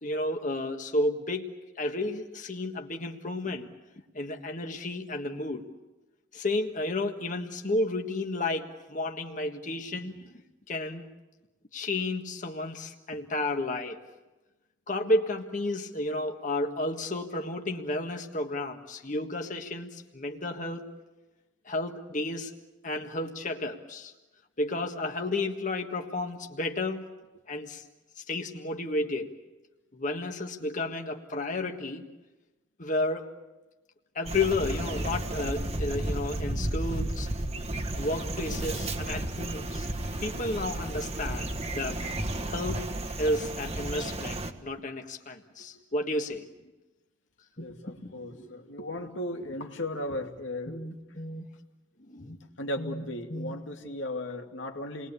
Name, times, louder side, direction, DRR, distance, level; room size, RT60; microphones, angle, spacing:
voice 1, 0.0-1.5 1.8-3.7 4.1-5.6 6.3-10.3 10.7-11.1 11.7-14.0 14.9-20.9 21.6-22.5 22.8-24.1 24.6-27.1 27.5-27.8 28.2-29.3 29.9-32.0 32.8-33.3 34.1-37.3 38.0-39.9 40.2-42.0 42.4-42.9 43.2-46.5 47.6-48.5 50.7-51.5 52.0-52.4 52.8-53.0 53.3-53.6, left 2 dB, 45° left, 3 dB, 1.6 m, -32 dB
sound 1, 34.3-44.5, right 1 dB, 35° right, 1.5 m, -33 dB
voice 2, 47.6-50.8 52.6-55.1, left 1 dB, 90° left, 3 dB, 2.4 m, -36 dB
29.5 x 21.0 x 8.4 m, 1.1 s
head